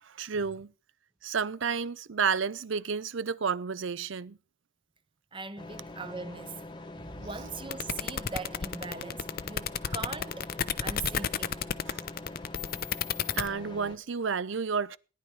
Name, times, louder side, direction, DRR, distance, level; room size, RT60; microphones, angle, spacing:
voice 1, 0.0-0.7 1.2-4.4 9.8-9.9 11.9-12.0 13.3-15.0, right 5 dB, 65° right, 0.6 m, -31 dB
voice 2, 5.3-6.6 6.9-10.5 10.8-11.6, right 4 dB, 25° right, 1.1 m, -40 dB
sound 1, 5.6-14.0, left 2 dB, 20° left, 1.1 m, -44 dB
sound 2, 7.7-13.5, left 8 dB, 45° left, 0.6 m, -31 dB
17.5 x 10.5 x 4.8 m
head